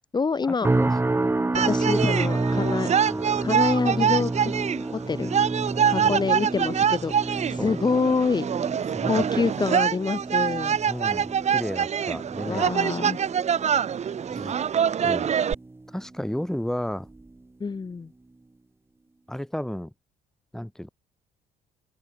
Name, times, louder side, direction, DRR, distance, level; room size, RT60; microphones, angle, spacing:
voice 1, 0.1-0.7 1.6-2.9 3.4-4.6 5.1-5.3 5.9-8.7 9.0-10.8 12.5-13.2 17.6-18.1, left 4 dB, 25° left, 3.0 m, -26 dB
sound 1, 0.6-15.9 16.2-16.6 17.1-17.3, right 2 dB, 15° right, 3.5 m, -30 dB
sound 2, 1.5-15.5, right 8 dB, 40° right, 1.5 m, -25 dB
voice 2, 8.9-9.2 10.8-12.7 14.3-14.5 15.0-15.3 15.9-17.1 19.3-19.9 20.5-20.9, equal, 5° left, 4.0 m, -32 dB
cardioid pair, 110°, 17 cm